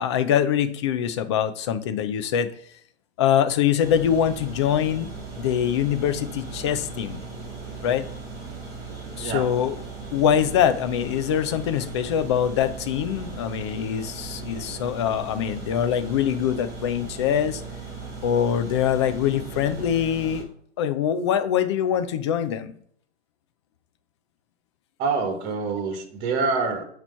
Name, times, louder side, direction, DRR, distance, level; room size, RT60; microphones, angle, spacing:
voice 1, 0.0-2.5 3.2-5.1 5.4-7.2 7.8-8.1 9.2-9.7 10.1-17.6 18.2-20.5 20.8-22.7, left 9 dB, 25° left, 12 dB, 0.4 m, -23 dB
sound 1, 3.8-20.4, right 4 dB, 10° right, 2.4 m, -38 dB
voice 2, 25.0-26.8, right 4 dB, 30° right, 6 dB, 1.5 m, -26 dB
8.8 x 3.1 x 5.6 m, 0.63 s
hypercardioid pair, 135°, 35 cm